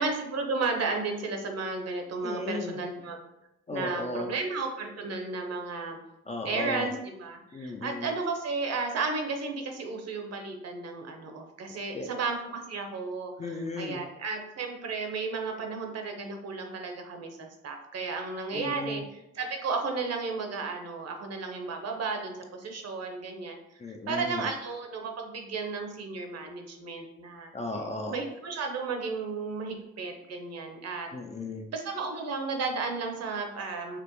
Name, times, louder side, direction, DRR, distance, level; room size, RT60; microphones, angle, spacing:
voice 1, 0.0-3.2 3.7-6.0 6.4-23.6 24.1-27.5 28.1-31.1 31.7-34.0, right 4 dB, 55° right, 3 dB, 0.8 m, -33 dB
voice 2, 2.2-2.8 3.7-4.3 6.3-6.9 7.5-8.1 11.9-12.1 13.4-14.0 18.5-19.0 23.8-24.5 27.5-28.2 31.1-31.7, left 2 dB, 25° left, 3 dB, 0.4 m, -35 dB
5.0 x 2.0 x 3.0 m, 0.87 s
cardioid pair, 90°, 30 cm